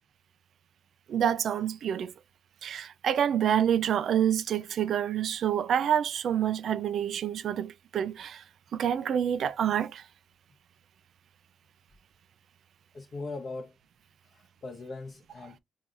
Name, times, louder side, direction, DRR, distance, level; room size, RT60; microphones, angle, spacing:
voice 1, 1.1-2.1 2.6-8.4 8.7-10.0, right 9 dB, 70° right, 0.4 m, -27 dB
voice 2, 12.9-13.7 14.2-15.6, left 3 dB, 50° left, 1.0 m, -40 dB
4.7 x 2.8 x 2.5 m
supercardioid pair, 55°, 0 cm